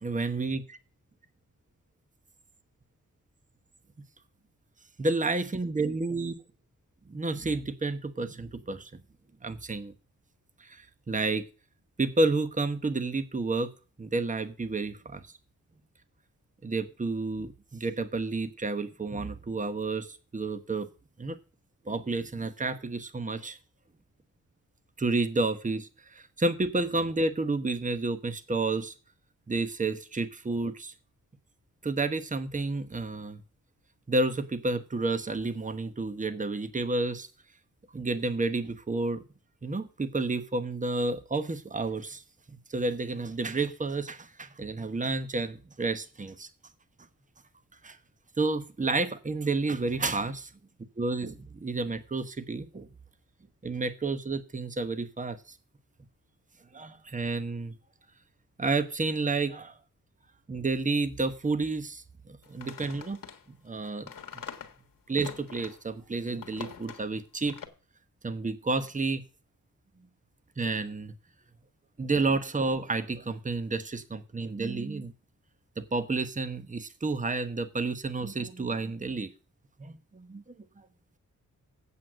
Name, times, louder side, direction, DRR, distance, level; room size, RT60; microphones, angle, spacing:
voice 1, 0.0-0.8 5.0-6.3 7.1-8.9 9.4-9.9 10.6-11.5 12.0-13.7 14.0-15.2 16.6-20.9 21.2-21.4 21.9-23.6 25.0-28.9 29.5-30.9 31.8-33.4 34.1-37.3 37.9-39.2 39.6-42.2 42.5-46.5 47.8-48.0 48.4-50.5 51.0-52.9 53.6-55.4 56.7-57.7 58.6-59.8 60.5-63.2 63.6-64.1 65.1-67.6 68.2-69.2 70.6-71.1 72.0-75.1 75.8-79.3 79.8-80.4 80.8-80.9, right 3 dB, 25° right, 1.1 m, -30 dB
sound 1, 62.4-65.8 66.3-67.1 67.5-67.7, left 8 dB, 85° left, 1.5 m, -44 dB
8.5 x 7.9 x 6.3 m
wide cardioid pair, 95°, 33 cm